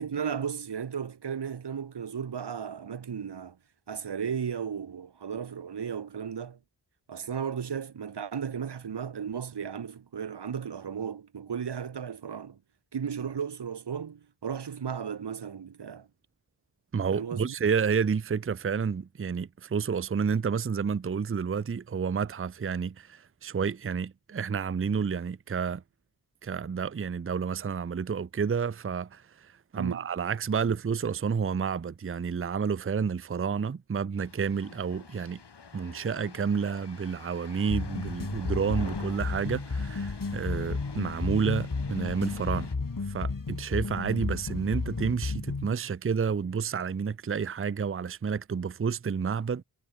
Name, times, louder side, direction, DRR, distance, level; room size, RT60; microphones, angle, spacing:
voice 1, 0.0-3.6 3.9-6.6 7.1-12.6 12.9-16.1 17.1-17.5 29.8-30.1, right 7 dB, 80° right, 0.9 m, -35 dB
voice 2, 16.9-25.8 26.4-35.4 35.7-42.7 43.1-49.6, right 6 dB, 35° right, 0.5 m, -30 dB
sound 1, 34.2-42.8, left 5 dB, 85° left, 1.8 m, -47 dB
sound 2, 37.7-45.7, left 4 dB, 55° left, 2.4 m, -33 dB
wide cardioid pair, 50°, 40 cm